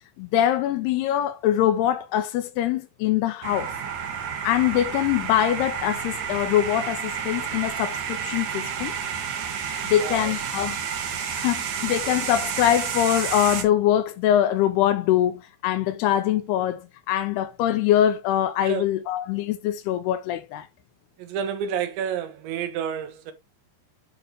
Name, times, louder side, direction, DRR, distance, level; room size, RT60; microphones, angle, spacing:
voice 1, 0.2-3.7 4.4-8.9 9.8-10.8 11.3-20.7, left 11 dB, 80° left, 2.5 m, -23 dB
sound 1, 3.4-13.6, right 7 dB, 60° right, 2.1 m, -30 dB
voice 2, 10.0-10.3 18.7-18.8 21.2-23.3, right 8 dB, 90° right, 3.6 m, -29 dB
8.9 x 5.9 x 3.2 m
omnidirectional pair, 5.0 m